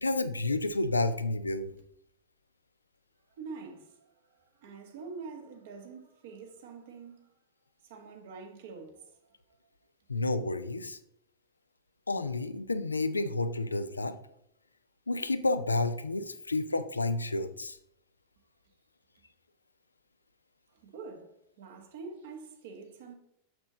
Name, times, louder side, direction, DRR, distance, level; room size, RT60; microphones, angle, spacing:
voice 1, 0.0-1.7 10.1-11.0 12.1-14.2 15.1-17.8, left 2 dB, 80° left, 0.4 m, -30 dB
voice 2, 3.4-3.9 4.6-7.3 7.8-9.1 20.8-23.1, right 4 dB, 55° right, 1.3 m, -45 dB
6.5 x 6.0 x 3.8 m
figure-of-eight pair, 90°, 0 cm